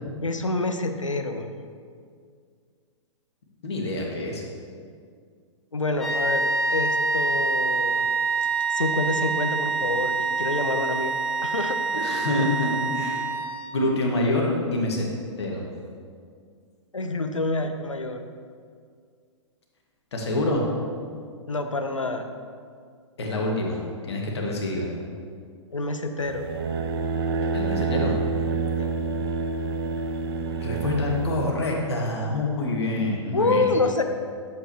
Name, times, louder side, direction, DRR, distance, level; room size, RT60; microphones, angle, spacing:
voice 1, 0.2-1.5 5.7-8.1 8.7-12.2 16.9-18.3 21.5-22.3 25.7-26.5 28.8-28.9 33.3-34.0, left 2 dB, 80° left, 7 dB, 0.7 m, -27 dB
voice 2, 3.6-4.4 12.0-13.2 13.7-15.1 15.4-15.6 20.1-20.6 23.2-24.9 27.5-28.2 30.6-33.7, left 2 dB, 60° left, -1 dB, 1.8 m, -26 dB
sound 1, 6.0-13.9, right 3 dB, ahead, 1.2 m, -26 dB
sound 2, 26.2-31.5, right 4 dB, 50° right, 0.7 m, -27 dB
11.0 x 7.5 x 2.9 m, 2.1 s
figure-of-eight pair, 110°, 16 cm